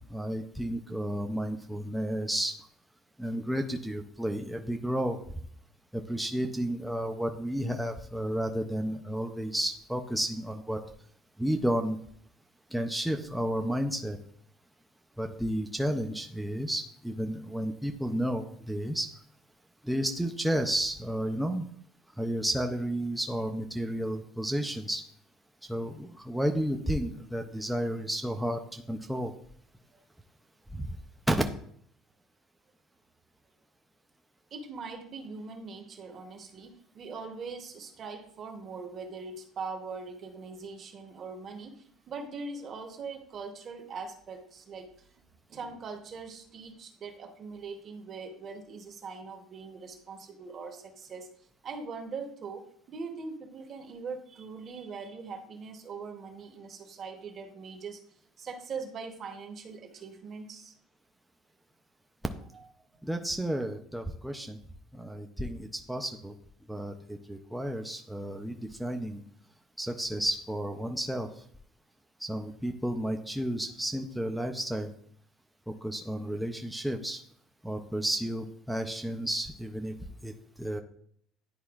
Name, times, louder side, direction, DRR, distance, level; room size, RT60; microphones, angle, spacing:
voice 1, 0.1-2.5 3.2-5.2 5.9-10.8 11.4-12.0 12.7-14.2 15.2-19.1 19.8-21.7 22.2-25.0 25.7-29.3 30.7-30.9 31.3-31.4 62.5-62.7 63.0-64.6 64.9-66.3 66.7-69.2 69.8-71.3 72.2-74.9 75.7-77.2 77.6-79.9 80.2-80.3 80.6-80.8, right 1 dB, ahead, 3 dB, 0.3 m, -32 dB
voice 2, 34.5-45.1 45.5-51.3 51.6-58.0 58.4-60.7, right 4 dB, 30° right, 5 dB, 0.8 m, -41 dB
10.5 x 4.2 x 2.3 m, 0.63 s
cardioid pair, 170°, 0 cm